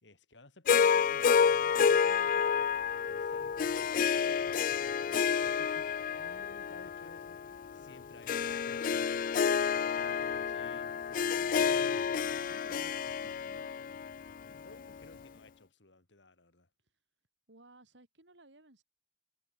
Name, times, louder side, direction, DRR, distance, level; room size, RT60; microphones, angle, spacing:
voice 1, 0.0-2.7 3.0-7.4 7.7-9.2 9.8-13.9 14.4-16.7, left 2 dB, 85° left, 3.1 m, -56 dB
Harp, 0.7-15.0, left 7 dB, 50° left, 0.3 m, -30 dB
voice 2, 13.2-13.7 17.5-18.8, right 2 dB, 85° right, 4.9 m, -60 dB
head